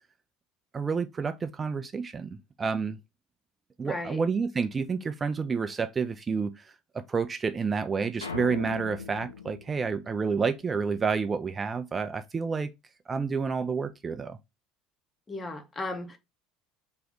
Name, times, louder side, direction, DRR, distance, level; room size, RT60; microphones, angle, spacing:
voice 1, 0.7-3.0 3.8-6.7 7.1-12.7 13.1-14.4, right 5 dB, 25° right, 0.3 m, -29 dB
voice 2, 3.8-4.2 15.3-16.2, left 2 dB, 25° left, 0.8 m, -35 dB
sound 1, 8.2-10.7, left 5 dB, 85° left, 0.4 m, -40 dB
3.0 x 2.8 x 4.0 m
figure-of-eight pair, 65°, 0 cm